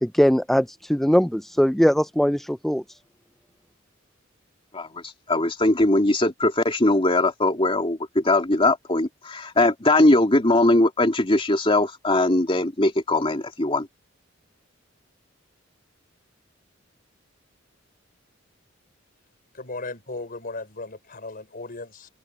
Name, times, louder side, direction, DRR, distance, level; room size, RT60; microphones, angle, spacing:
voice 1, 0.0-2.8, equal, ahead, 0.3 m, -20 dB
voice 2, 4.7-13.9, left 2 dB, 25° left, 2.7 m, -20 dB
voice 3, 19.5-22.1, left 3 dB, 45° left, 4.3 m, -36 dB
open air
head